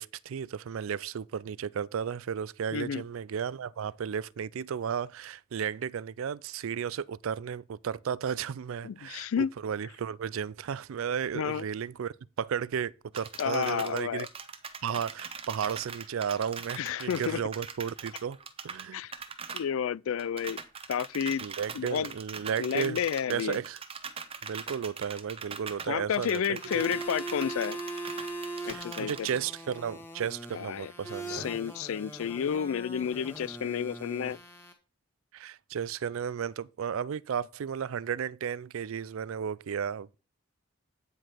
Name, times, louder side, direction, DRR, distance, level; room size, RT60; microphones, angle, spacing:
voice 1, 0.0-14.3 14.8-18.4 18.6-19.0 19.5-19.6 21.4-23.0 23.3-23.8 24.4-26.6 28.6-31.5 35.3-40.2, right 7 dB, 75° right, 0.4 m, -34 dB
voice 2, 2.7-3.0 8.8-9.5 11.3-11.6 13.4-14.3 16.8-17.4 18.9-19.1 19.5-20.6 20.9-21.5 21.7-22.1 22.6-23.6 25.9-27.8 28.7-29.3 30.5-30.9 31.3-34.4, left 8 dB, 80° left, 0.3 m, -31 dB
sound 1, 13.1-18.9 19.1-19.6 19.9-20.0 20.2-29.4, right 6 dB, 25° right, 0.8 m, -41 dB
sound 2, 26.6-34.7, right 2 dB, 10° left, 1.4 m, -40 dB
9.4 x 5.0 x 5.8 m
head